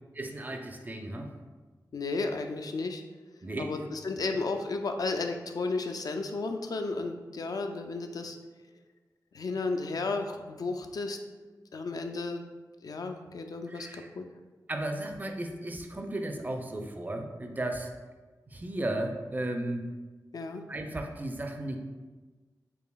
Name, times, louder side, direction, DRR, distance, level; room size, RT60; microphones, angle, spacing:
voice 1, 0.1-1.3 3.4-3.8 13.7-14.1 14.7-17.9 18.5-19.9 20.7-21.8, right 1 dB, 25° right, 5 dB, 0.4 m, -35 dB
voice 2, 1.9-3.0 3.6-8.4 9.3-11.2 11.7-12.5 12.8-14.2 20.3-20.6, left 3 dB, 60° left, 5 dB, 0.3 m, -33 dB
4.7 x 2.6 x 2.3 m, 1.3 s
wide cardioid pair, 65°, 7 cm